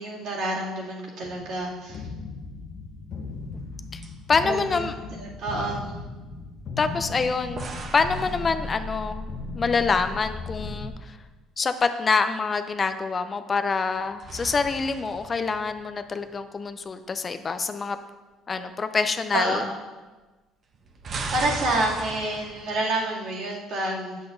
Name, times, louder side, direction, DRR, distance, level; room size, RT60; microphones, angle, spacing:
voice 1, 0.0-2.1 4.4-5.9 19.3-19.8 21.3-24.2, right 2 dB, 70° right, -6 dB, 2.3 m, -28 dB
sound 1, 1.2-10.9, left 3 dB, 50° left, 0.8 m, -37 dB
sound 2, 3.1-3.8 4.0-4.1 7.6-9.2 13.7-16.3 20.7-22.8, right 3 dB, 35° right, 0.7 m, -37 dB
voice 2, 4.3-4.9 6.8-9.3 9.5-11.2 11.6-18.0 18.5-19.7, left 4 dB, 25° left, 9 dB, 0.3 m, -26 dB
8.6 x 7.8 x 2.6 m, 1.2 s
cardioid pair, 130°, 0 cm